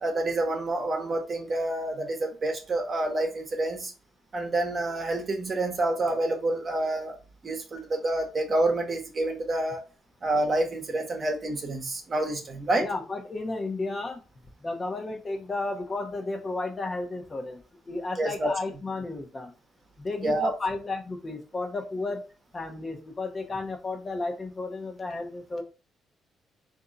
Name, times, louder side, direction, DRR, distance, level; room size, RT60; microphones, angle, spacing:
voice 1, 0.0-3.9 4.3-7.2 7.4-9.9 10.2-12.9 18.2-18.5 20.2-20.5, right 2 dB, 40° right, 1.0 m, -28 dB
voice 2, 12.8-14.2 14.6-17.6 17.9-19.5 20.0-22.2 22.5-25.6, left 2 dB, 30° left, 0.9 m, -33 dB
3.6 x 2.7 x 3.9 m
cardioid pair, 90°, 0 cm